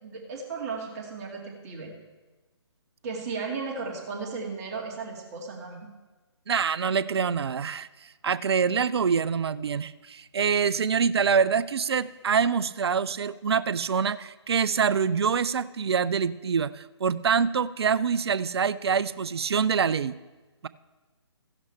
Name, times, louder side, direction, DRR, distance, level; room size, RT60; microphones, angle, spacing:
voice 1, 0.0-1.9 3.0-5.9, right 4 dB, 35° right, 0 dB, 2.1 m, -35 dB
voice 2, 6.5-7.9 8.2-20.1, right 6 dB, 60° right, 17 dB, 0.5 m, -25 dB
15.5 x 11.0 x 3.3 m, 1.2 s
figure-of-eight pair, 140°, 15 cm